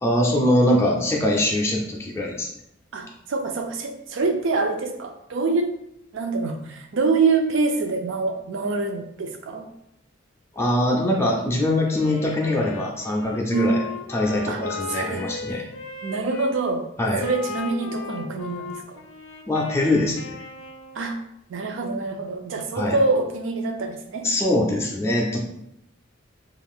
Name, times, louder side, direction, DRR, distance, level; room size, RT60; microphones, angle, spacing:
voice 1, 0.0-2.5 10.5-13.8 14.1-15.6 17.0-17.2 19.5-20.4 22.7-23.0 24.2-25.4, left 1 dB, 15° left, -2 dB, 0.4 m, -22 dB
voice 2, 2.9-5.7 6.1-9.7 13.5-13.8 14.5-14.6 14.9-15.3 16.0-16.8 17.2-19.0 20.9-21.2 21.5-24.3, right 3 dB, 70° right, 5 dB, 0.4 m, -25 dB
Wind instrument woodwind instrument, 11.8-16.5 17.2-21.1, left 4 dB, 90° left, 0.4 m, -36 dB
2.4 x 2.4 x 3.5 m, 0.77 s
head